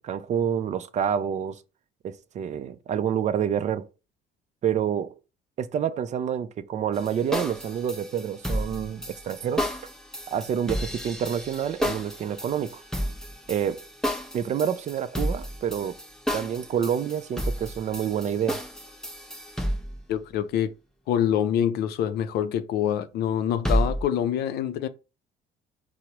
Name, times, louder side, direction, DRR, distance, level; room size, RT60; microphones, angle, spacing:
voice 1, 0.0-1.6 2.0-3.9 4.6-5.2 5.6-9.7 10.3-12.8 13.5-13.9 14.3-16.0 16.3-18.6, right 8 dB, 45° right, 0.4 m, -28 dB
sound 1, 6.9-20.0 23.6-24.0, equal, 5° left, 0.6 m, -31 dB
voice 2, 20.1-20.7 21.1-24.9, left 10 dB, 70° left, 0.4 m, -25 dB
4.5 x 2.0 x 2.8 m
cardioid pair, 110°, 17 cm